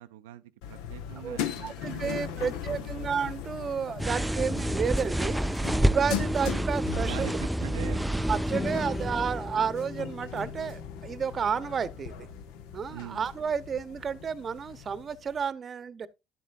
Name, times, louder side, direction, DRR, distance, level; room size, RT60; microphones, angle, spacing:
voice 1, 0.0-3.1 6.2-6.3 7.0-8.1 8.5-9.2 12.9-13.3, right 13 dB, 90° right, 0.4 m, -44 dB
sound 1, 0.6-15.4, left 9 dB, 75° left, 0.8 m, -39 dB
voice 2, 1.2-5.4 5.8-7.4 8.3-12.3 12.7-16.1, right 6 dB, 40° right, 0.8 m, -31 dB
sound 2, 4.0-9.7, right 1 dB, 5° right, 0.3 m, -29 dB
sound 3, 8.5-14.8, left 4 dB, 40° left, 0.6 m, -42 dB
10.5 x 7.4 x 2.5 m
hypercardioid pair, 75°, 0 cm